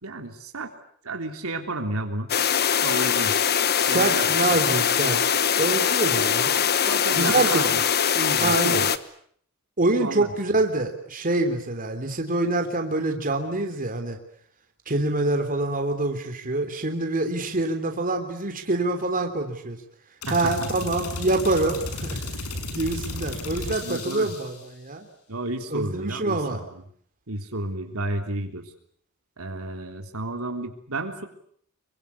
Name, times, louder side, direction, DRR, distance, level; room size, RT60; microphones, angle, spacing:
voice 1, 0.0-0.7 1.0-2.3 2.8-3.3 3.9-4.3 6.9-7.8 8.1-8.9 10.0-10.3 20.3-20.5 23.8-24.3 25.3-26.8 27.3-28.6 29.4-31.2, right 2 dB, 70° right, 4 dB, 3.4 m, -31 dB
sound 1, 2.3-9.0, left 8 dB, 45° left, 1.3 m, -22 dB
voice 2, 3.8-5.2 5.6-6.5 7.2-7.7 8.4-8.9 9.8-14.2 14.9-19.8 20.3-22.2 22.7-25.1 25.7-26.6, right 2 dB, 40° right, 5 dB, 3.4 m, -25 dB
sound 2, 20.2-24.7, left 2 dB, 85° left, 5.9 m, -34 dB
27.0 x 24.0 x 8.4 m, 0.63 s
head